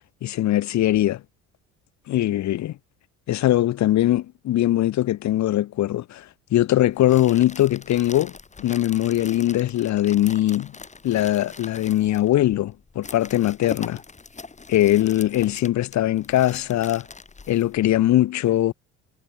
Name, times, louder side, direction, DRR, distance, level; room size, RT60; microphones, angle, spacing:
voice 1, 0.2-1.2 2.1-2.7 3.3-6.2 6.5-10.7 11.0-14.0 14.7-17.0 17.5-18.7, left 13 dB, 60° left, 1.5 m, -21 dB
sound 1, 6.9-18.2, left 4 dB, 20° left, 4.2 m, -42 dB
supercardioid pair, 95°, 32 cm